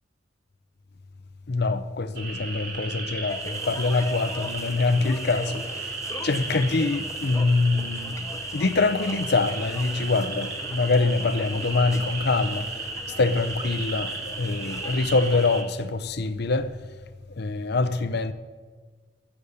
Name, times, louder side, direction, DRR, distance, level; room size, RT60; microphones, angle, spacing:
voice 1, 1.5-6.0 6.2-12.8 13.2-16.7 17.3-18.3, left 3 dB, 60° left, 0.7 m, -24 dB
sound 1, 2.2-15.6, right 3 dB, 65° right, 3.5 m, -35 dB
sound 2, 3.3-15.6, left 2 dB, 15° left, 0.7 m, -41 dB
14.5 x 7.2 x 7.1 m
head